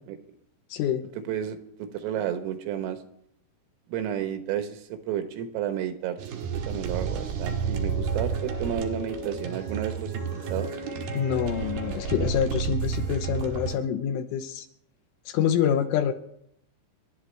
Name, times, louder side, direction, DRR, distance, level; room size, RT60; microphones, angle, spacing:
voice 1, 0.7-1.1 11.1-14.7 15.3-16.1, left 9 dB, 80° left, 7 dB, 3.2 m, -26 dB
voice 2, 1.3-3.0 3.9-6.4 6.7-10.7, right 9 dB, 80° right, 7 dB, 3.9 m, -32 dB
sound 1, 6.2-13.7, right 6 dB, 60° right, 2.9 m, -31 dB
sound 2, 7.5-12.4, left 18 dB, 45° left, 6.6 m, -43 dB
28.0 x 12.0 x 3.4 m, 0.73 s
omnidirectional pair, 6.0 m